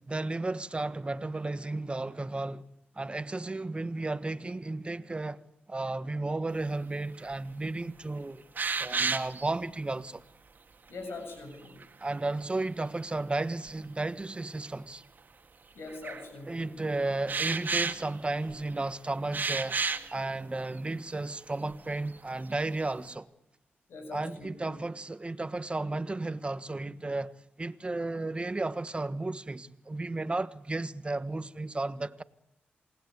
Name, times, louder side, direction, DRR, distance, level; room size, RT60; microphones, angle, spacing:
voice 1, 0.1-2.7 2.9-5.4 5.7-8.4 8.8-10.2 12.0-15.0 16.5-19.8 20.1-23.3 24.1-32.2, right 2 dB, 30° right, 1.4 m, -33 dB
sound 1, 7.2-7.3 7.8-7.9 8.6-9.5 11.7-12.4 13.7-13.8 14.6-14.7 15.9-16.3 17.3-18.7 19.3-20.1 20.8-20.9 21.2-21.3 21.7-22.2 22.5-23.1, right 4 dB, 50° right, 2.0 m, -32 dB
voice 2, 10.9-11.8 15.7-16.8 23.9-24.8, left 3 dB, 80° left, 7.7 m, -43 dB
28.0 x 19.5 x 9.6 m
cardioid pair, 65°, 4 cm